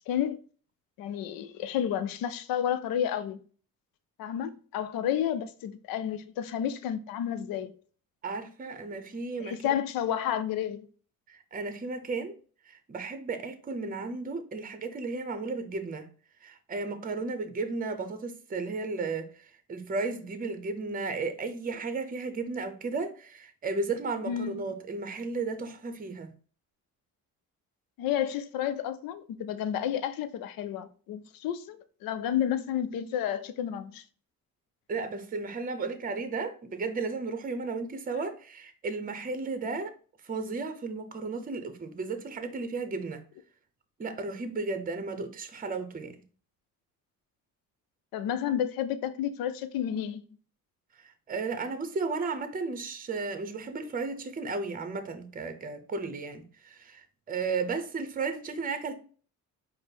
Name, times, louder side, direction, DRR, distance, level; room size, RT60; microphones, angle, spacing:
voice 1, 0.1-0.4 1.0-3.4 4.2-7.7 9.4-10.9 24.2-24.7 28.0-34.0 48.1-50.2, left 10 dB, 80° left, 0.6 m, -31 dB
voice 2, 8.2-9.6 11.3-12.4 12.7-16.1 16.4-26.3 34.9-39.9 40.2-43.2 44.0-46.2 51.0-58.9, right 4 dB, 25° right, 0.7 m, -34 dB
4.9 x 2.1 x 4.4 m
cardioid pair, 90°, 35 cm